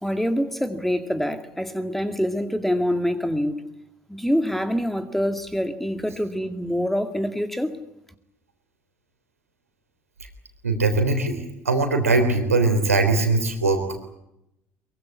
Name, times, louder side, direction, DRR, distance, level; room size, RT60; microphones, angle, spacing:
voice 1, 0.0-3.7 4.1-7.8, equal, ahead, 2.1 m, -25 dB
voice 2, 10.6-13.8, right 3 dB, 80° right, 3.6 m, -21 dB
23.5 x 23.0 x 8.4 m
figure-of-eight pair, 60°, 8 cm